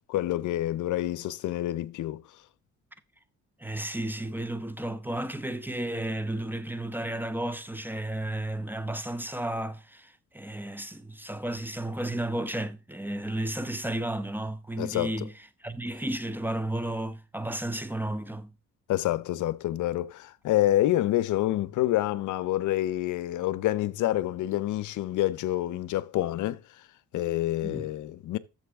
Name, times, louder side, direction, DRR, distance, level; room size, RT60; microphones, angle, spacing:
voice 1, 0.1-2.2 14.8-15.1 18.9-26.6 27.1-28.4, left 14 dB, 75° left, 0.7 m, -27 dB
voice 2, 3.6-15.3 15.6-18.5 27.6-27.9, right 1 dB, 5° right, 0.8 m, -33 dB
12.5 x 7.1 x 3.5 m
cardioid pair, 90°, 30 cm